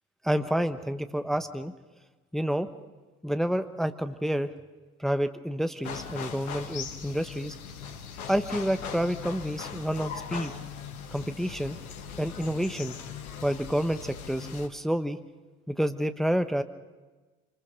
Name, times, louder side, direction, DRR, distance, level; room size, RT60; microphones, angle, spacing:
voice 1, 0.2-1.7 2.3-2.7 3.2-4.5 5.0-7.5 8.3-10.5 11.1-11.8 12.2-12.9 13.4-15.2 15.7-16.6, equal, ahead, 9 dB, 1.1 m, -29 dB
sound 1, 5.8-14.7, left 7 dB, 75° left, 1.8 m, -40 dB
27.5 x 21.0 x 5.3 m, 1.3 s
figure-of-eight pair, 60°, 44 cm